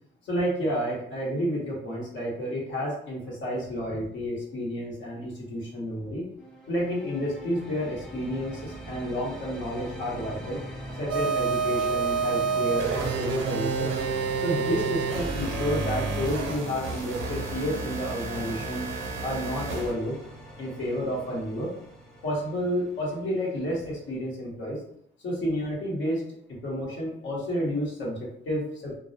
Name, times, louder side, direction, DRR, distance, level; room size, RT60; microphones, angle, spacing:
voice 1, 0.2-6.3 6.7-10.6 11.0-13.9 14.4-18.8 19.2-20.1 20.6-21.7 22.2-24.8 25.2-26.2 26.6-29.0, equal, 70° left, -4 dB, 1.0 m, -30 dB
sound 1, 6.4-24.1, right 1 dB, 5° left, 0.7 m, -41 dB
sound 2, 11.1-19.9, right 5 dB, 85° right, 0.5 m, -29 dB
2.3 x 2.0 x 2.7 m, 0.71 s
cardioid pair, 90°, 20 cm